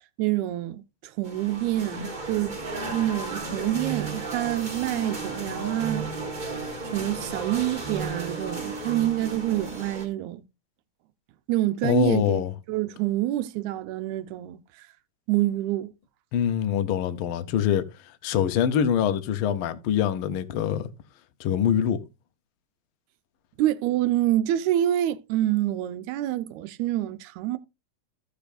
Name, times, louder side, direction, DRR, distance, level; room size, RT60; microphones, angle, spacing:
voice 1, 0.2-2.6 2.9-6.1 6.8-10.4 11.5-12.4 12.7-14.9 15.3-15.9 23.6-27.6, right 14 dB, 85° right, 2.0 m, -27 dB
sound 1, 1.2-10.0, right 3 dB, 35° right, 0.7 m, -34 dB
voice 2, 11.8-12.5 16.3-20.9 21.4-22.0, left 9 dB, 85° left, 1.2 m, -24 dB
14.5 x 6.9 x 2.5 m
omnidirectional pair, 3.3 m